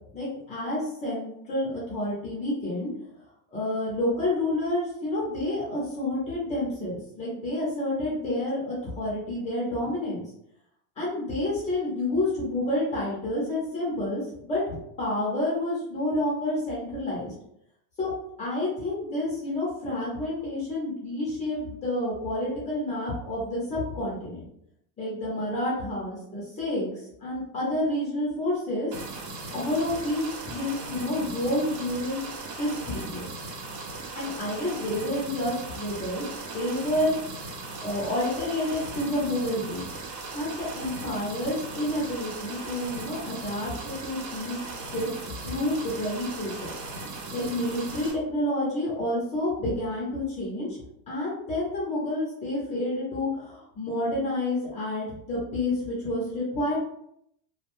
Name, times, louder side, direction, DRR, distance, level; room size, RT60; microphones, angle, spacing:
voice 1, 0.1-2.9 3.5-10.2 11.0-17.3 18.0-18.1 18.4-24.4 25.0-26.9 27.2-28.9 29.5-32.3 32.6-33.3 34.1-36.2 36.5-37.2 37.8-39.9 40.3-45.1 45.4-46.7 47.3-50.8 51.1-56.8, left 1 dB, 15° left, -6 dB, 0.3 m, -29 dB
sound 1, 28.9-48.1, right 3 dB, 85° right, 0.9 m, -38 dB
2.4 x 2.1 x 2.9 m, 0.75 s
cardioid pair, 155°, 49 cm